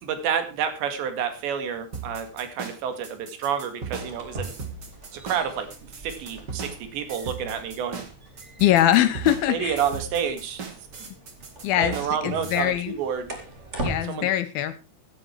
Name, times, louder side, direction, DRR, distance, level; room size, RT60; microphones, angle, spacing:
voice 1, 0.0-4.5 5.1-8.0 9.5-10.6 11.8-13.3 14.0-14.3, right 8 dB, 90° right, 8 dB, 4.3 m, -29 dB
sound 1, 1.9-12.6, right 4 dB, 35° right, 1.8 m, -38 dB
sound 2, 4.0-14.0, right 2 dB, 20° right, 2.2 m, -40 dB
voice 2, 8.6-9.8 11.6-12.0 12.2-13.0 13.8-14.8, left 12 dB, 75° left, 14 dB, 2.4 m, -22 dB
16.0 x 11.0 x 4.5 m, 0.30 s
omnidirectional pair, 4.9 m